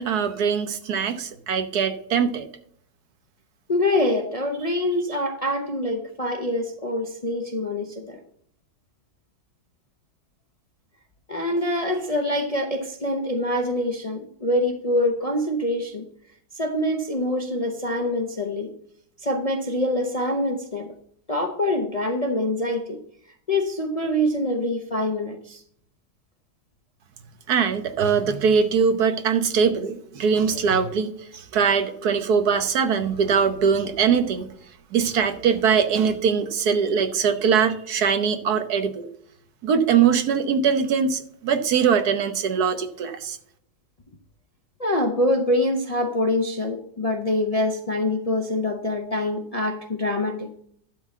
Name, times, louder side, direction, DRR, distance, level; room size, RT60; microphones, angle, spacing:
voice 1, 0.0-2.5 27.5-34.5 34.9-39.1 39.6-43.4, right 6 dB, 70° right, 9 dB, 1.5 m, -22 dB
voice 2, 3.7-8.2 11.3-16.1 16.5-18.7 19.2-20.9 21.3-23.0 23.5-25.6 44.8-50.5, left 1 dB, 30° left, 4 dB, 0.7 m, -25 dB
11.5 x 3.9 x 7.3 m, 0.66 s
omnidirectional pair, 1.8 m